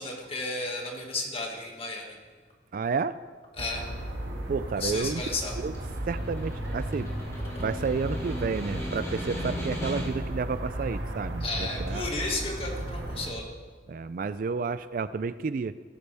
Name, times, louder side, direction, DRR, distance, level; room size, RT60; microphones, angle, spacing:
voice 1, 0.0-2.2 3.6-3.8 4.8-5.5 11.4-13.5, left 2 dB, 30° left, 0 dB, 1.9 m, -33 dB
voice 2, 2.7-3.2 4.5-5.2 5.6-5.7 6.1-7.1 7.6-12.1 13.9-15.8, right 4 dB, 50° right, 14 dB, 0.3 m, -31 dB
sound 1, 3.6-13.3, right 1 dB, 75° right, 1.7 m, -35 dB
Snare drum, 5.6-10.4, left 1 dB, 15° left, 2.9 m, -38 dB
17.0 x 12.0 x 3.5 m, 1.5 s
head